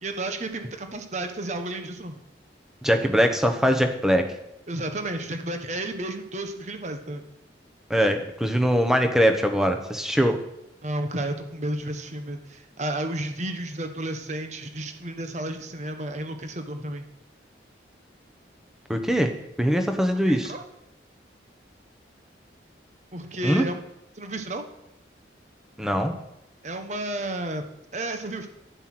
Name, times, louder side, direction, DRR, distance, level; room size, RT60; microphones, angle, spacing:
voice 1, 0.0-2.2 4.7-7.3 10.8-17.1 20.3-20.6 23.1-23.8 24.1-24.6 26.6-27.6 27.9-28.5, right 1 dB, 40° right, 6 dB, 1.2 m, -32 dB
voice 2, 2.8-4.3 7.9-10.4 18.9-19.3 19.6-20.5 23.4-23.7 25.8-26.1, equal, 5° right, 5 dB, 1.1 m, -22 dB
11.5 x 10.5 x 6.2 m, 0.85 s
head